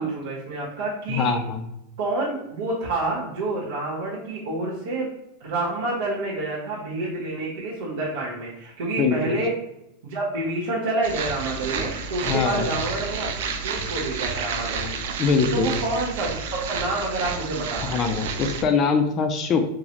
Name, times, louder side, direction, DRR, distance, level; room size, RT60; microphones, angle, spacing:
voice 1, 0.0-1.4 2.0-5.1 5.4-9.6 10.0-15.0 15.5-18.0, right 2 dB, 85° right, -6 dB, 1.0 m, -28 dB
voice 2, 1.1-1.6 9.0-9.4 12.2-12.8 15.2-15.7 17.8-19.7, left 5 dB, 25° left, 6 dB, 0.3 m, -23 dB
sound 1, 11.0-18.6, right 5 dB, 65° right, 0.4 m, -30 dB
3.8 x 2.0 x 2.9 m, 0.85 s
supercardioid pair, 170°, 0 cm